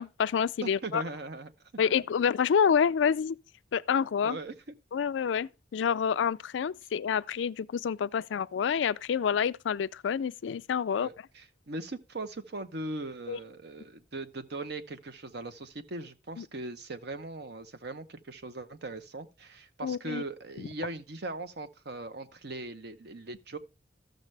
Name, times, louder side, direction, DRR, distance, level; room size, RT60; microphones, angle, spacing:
voice 1, 0.0-1.0 1.8-3.4 3.7-4.4 4.9-11.1 13.3-13.4 16.4-16.5 19.8-20.2 20.6-20.7, left 7 dB, 85° left, 0.4 m, -28 dB
voice 2, 0.6-1.5 4.2-4.6 10.9-23.6, right 2 dB, 65° right, 0.9 m, -39 dB
13.5 x 6.5 x 3.3 m
head